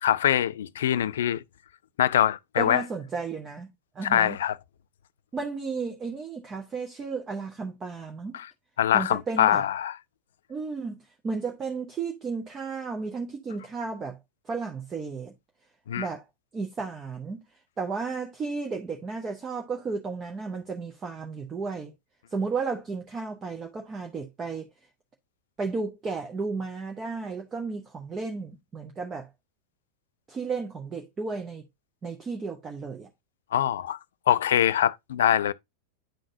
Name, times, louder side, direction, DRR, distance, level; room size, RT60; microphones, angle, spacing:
voice 1, 0.0-1.4 2.0-2.8 4.0-4.6 8.3-8.5 8.8-10.0 15.9-16.1 33.5-34.0 34.3-35.5, left 10 dB, 60° left, 0.3 m, -23 dB
voice 2, 2.6-4.4 5.3-8.4 8.9-9.6 10.5-14.2 14.4-15.3 16.0-16.2 16.5-17.4 17.8-21.9 22.3-24.7 25.6-29.3 30.3-31.6 32.0-33.1, right 4 dB, 20° right, 0.9 m, -33 dB
10.5 x 3.8 x 2.6 m
figure-of-eight pair, 90°, 0 cm